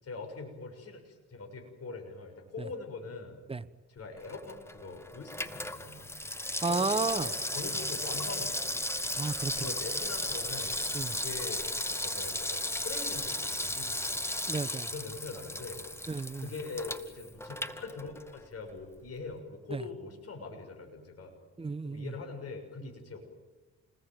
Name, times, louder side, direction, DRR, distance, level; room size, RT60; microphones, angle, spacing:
voice 1, 0.0-3.4 3.9-6.1 6.7-8.7 9.5-14.3 14.9-15.9 16.4-21.3 21.8-23.2, left 4 dB, 50° left, 6.6 m, -43 dB
Water tap faucet / Sink (filling or washing), 4.2-18.5 18.8-18.9, left 1 dB, 10° left, 1.7 m, -35 dB
voice 2, 6.6-7.3 9.2-9.5 10.9-11.2 14.5-14.9 16.1-16.5 19.7-19.8 21.6-22.1, right 4 dB, 20° right, 1.1 m, -32 dB
28.5 x 20.0 x 9.2 m
cardioid pair, 90°, 30 cm